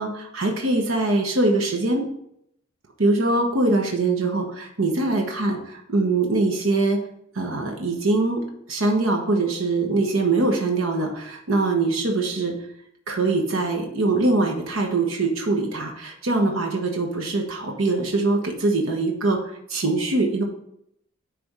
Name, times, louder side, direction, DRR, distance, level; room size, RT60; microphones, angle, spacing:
voice 1, 0.0-2.1 3.0-5.5 5.9-7.0 7.3-12.5 13.1-20.4, right 2 dB, 80° right, 2 dB, 1.1 m, -23 dB
10.0 x 3.4 x 4.7 m, 0.74 s
head